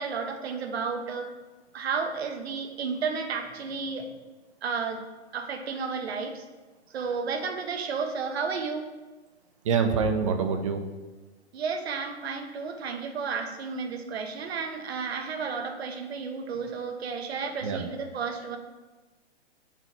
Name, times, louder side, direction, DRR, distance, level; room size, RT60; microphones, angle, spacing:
voice 1, 0.0-1.3 1.7-4.2 4.6-5.0 5.3-6.4 6.9-8.9 11.5-18.6, right 5 dB, 65° right, 6 dB, 1.0 m, -32 dB
voice 2, 9.6-10.8 17.6-17.9, right 5 dB, 30° right, 6 dB, 0.5 m, -25 dB
7.6 x 4.4 x 4.0 m, 1.2 s
hypercardioid pair, 160°, 34 cm